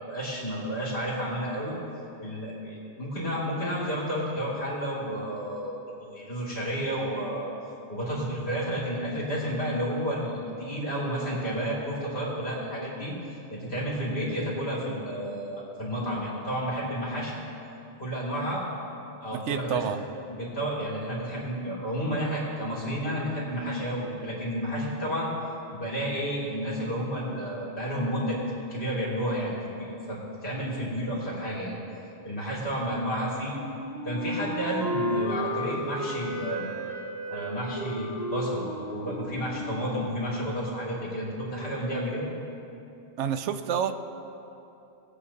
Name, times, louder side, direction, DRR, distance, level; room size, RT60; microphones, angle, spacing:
voice 1, 0.1-1.7 2.2-7.5 7.9-13.1 13.5-17.4 18.0-18.6 19.2-19.8 20.3-25.3 25.7-28.4 28.7-31.7 32.2-33.6 34.0-36.7 37.3-42.3, equal, 60° left, -6 dB, 3.0 m, -31 dB
voice 2, 19.3-20.0 43.2-43.9, right 8 dB, 80° right, 10 dB, 0.9 m, -29 dB
Wind instrument woodwind instrument, 33.5-40.3, equal, 20° right, 2.0 m, -34 dB
19.5 x 8.3 x 2.9 m, 2.9 s
omnidirectional pair, 1.2 m